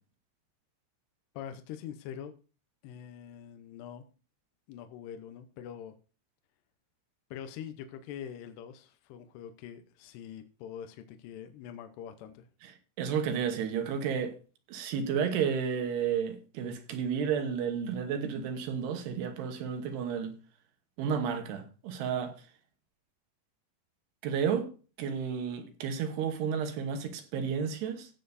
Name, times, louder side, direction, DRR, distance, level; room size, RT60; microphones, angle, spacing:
voice 1, 1.3-2.3 2.8-4.1 4.7-6.0 7.3-12.5, left 9 dB, 75° left, 2.8 m, -44 dB
voice 2, 13.0-14.4 14.7-20.3 21.0-22.4 24.2-24.7 25.0-28.1, right 7 dB, 75° right, 3.0 m, -32 dB
16.5 x 7.4 x 2.6 m
omnidirectional pair, 5.2 m